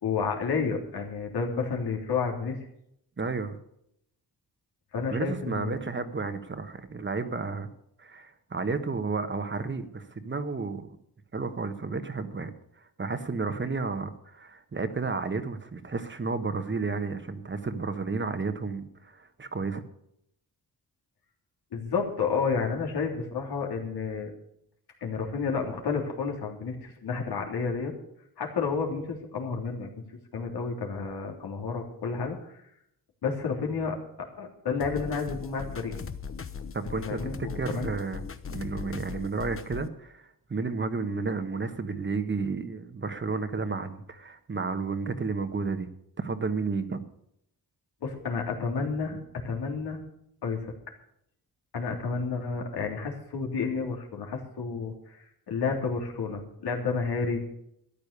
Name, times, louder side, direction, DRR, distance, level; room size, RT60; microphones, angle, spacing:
voice 1, 0.0-2.6 4.9-5.8 21.7-24.3 25.0-27.9 28.4-30.0 30.3-32.6 33.2-35.9 37.0-37.9 48.0-50.0 50.4-50.7 51.7-57.6, left 5 dB, 80° left, 0 dB, 3.4 m, -31 dB
voice 2, 3.2-3.6 5.1-7.7 8.0-11.0 11.3-19.8 36.7-37.2 37.5-38.2 38.5-45.9 46.2-47.0, right 4 dB, 30° right, 9 dB, 1.3 m, -32 dB
sound 1, 34.8-39.9, left 6 dB, 35° left, 1.0 m, -39 dB
13.5 x 10.5 x 6.8 m, 0.74 s
cardioid pair, 105°, 38 cm